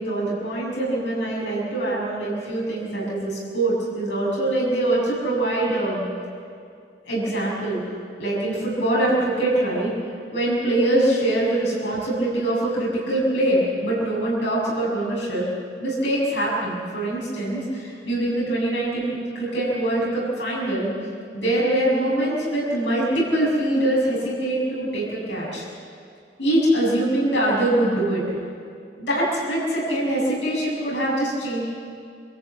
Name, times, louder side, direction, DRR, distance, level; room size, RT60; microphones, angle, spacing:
voice 1, 0.0-6.0 7.1-7.8 8.2-9.9 10.3-15.5 15.8-20.9 21.3-25.7 26.4-28.2 29.0-31.6, right 1 dB, 80° left, -5 dB, 6.9 m, -23 dB
25.0 x 14.0 x 8.5 m, 2.3 s
head